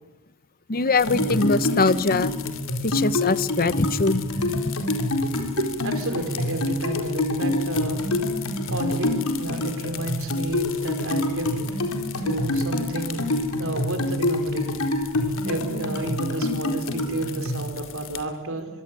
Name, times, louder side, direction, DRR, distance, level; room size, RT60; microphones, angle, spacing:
voice 1, 0.7-2.3 2.8-4.7, left 3 dB, 40° left, 15 dB, 1.0 m, -22 dB
sound 1, 1.0-18.2, left 10 dB, 65° left, 3.0 m, -41 dB
sound 2, 1.1-17.6, left 1 dB, 85° left, 4.3 m, -26 dB
voice 2, 5.3-18.7, right 2 dB, 65° right, 7 dB, 4.9 m, -31 dB
24.5 x 24.0 x 9.0 m, 1.1 s
head